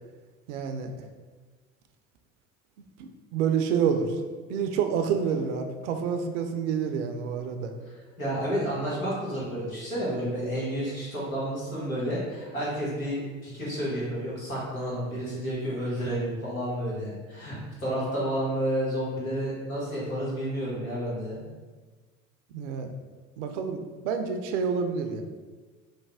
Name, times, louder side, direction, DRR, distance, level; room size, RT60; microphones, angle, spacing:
voice 1, 0.5-0.9 2.8-4.2 4.5-7.7 22.5-22.9 23.4-25.2, right 6 dB, 60° right, 6 dB, 0.5 m, -28 dB
voice 2, 8.2-21.4, equal, 85° left, -7 dB, 1.2 m, -30 dB
3.3 x 2.1 x 3.3 m, 1.4 s
figure-of-eight pair, 70°, 41 cm